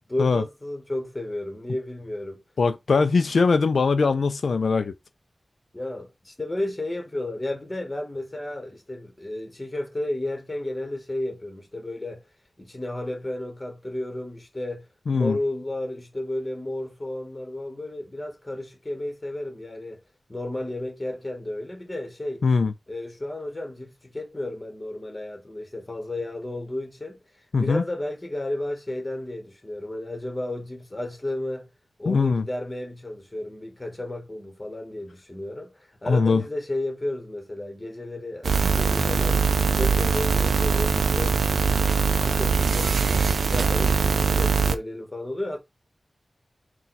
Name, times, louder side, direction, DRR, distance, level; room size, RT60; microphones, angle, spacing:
voice 1, 0.1-2.4 5.7-12.2 12.6-20.0 20.3-22.4 22.9-27.2 27.6-31.7 32.0-39.5 39.7-41.4 42.2-45.6, left 1 dB, 20° left, 1.4 m, -33 dB
voice 2, 2.6-4.9 15.1-15.4 22.4-22.7 27.5-27.8 32.1-32.4 36.1-36.4, left 4 dB, 75° left, 0.3 m, -21 dB
sound 1, 38.4-44.8, right 5 dB, 85° right, 0.4 m, -22 dB
4.1 x 2.3 x 3.9 m
wide cardioid pair, 100°, 0 cm